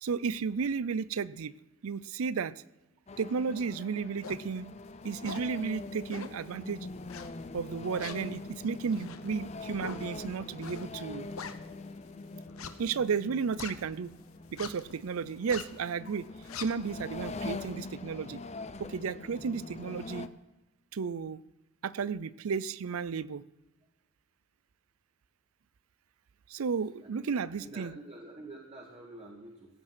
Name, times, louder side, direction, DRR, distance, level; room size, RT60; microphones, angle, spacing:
voice 1, 0.0-1.5 1.8-2.5 3.2-4.7 5.0-6.9 7.5-11.3 12.8-14.1 14.5-16.3 16.6-18.4 18.8-20.3 20.9-21.4 21.8-23.4 26.5-27.9, right 5 dB, 80° right, 19 dB, 0.5 m, -33 dB
sound 1, 3.1-20.3, left 3 dB, 30° left, 0.6 m, -43 dB
sound 2, 4.2-4.5 5.0-5.5 6.1-6.5 7.1-7.6 8.0-12.0 12.5-14.1 14.5-14.9 15.3-15.8 16.2-17.7, left 6 dB, 75° left, 1.0 m, -43 dB
voice 2, 27.0-29.8, right 2 dB, 25° right, -2 dB, 1.8 m, -48 dB
16.0 x 9.1 x 6.0 m, 1.1 s
head